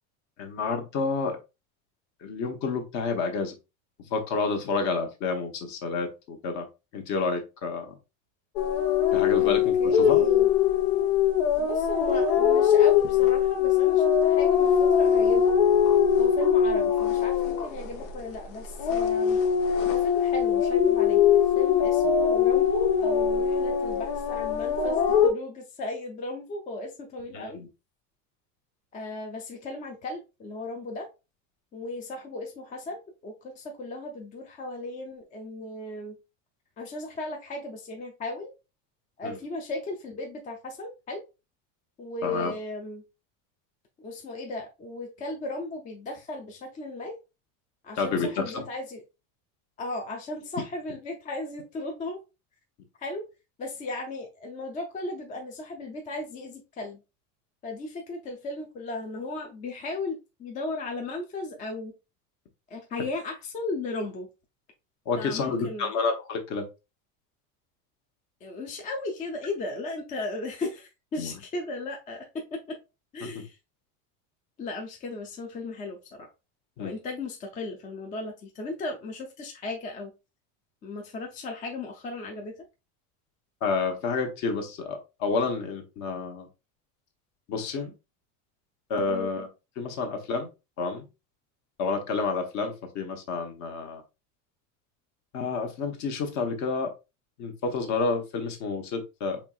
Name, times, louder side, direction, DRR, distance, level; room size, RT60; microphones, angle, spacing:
voice 1, 0.4-1.4 2.2-3.6 4.1-6.7 6.9-7.9 9.1-10.2 27.3-27.7 39.2-39.3 42.2-42.5 48.0-48.6 65.1-66.6 71.2-71.3 73.3-73.4 76.8-76.9 83.6-86.5 87.5-87.9 88.9-89.5 89.8-90.5 90.8-91.1 91.8-94.0 95.3-96.9 97.4-99.4, left 4 dB, 45° left, 5 dB, 0.9 m, -29 dB
sound 1, 8.6-18.4 18.7-25.3, left 8 dB, 85° left, 0.9 m, -22 dB
voice 2, 9.8-10.5 11.6-15.5 16.2-19.4 19.9-21.2 21.6-27.6 28.9-31.1 31.7-36.1 36.8-38.5 39.2-41.2 42.0-43.0 44.0-47.2 47.8-49.0 49.8-52.2 53.0-53.2 53.6-57.0 57.6-61.9 62.7-64.3 65.2-65.9 68.4-72.8 73.1-73.6 74.6-76.3 76.8-80.1 80.8-82.5 89.0-89.3, left 2 dB, 20° left, 2 dB, 0.4 m, -36 dB
4.3 x 3.1 x 2.3 m, 0.27 s
cardioid pair, 145°, 39 cm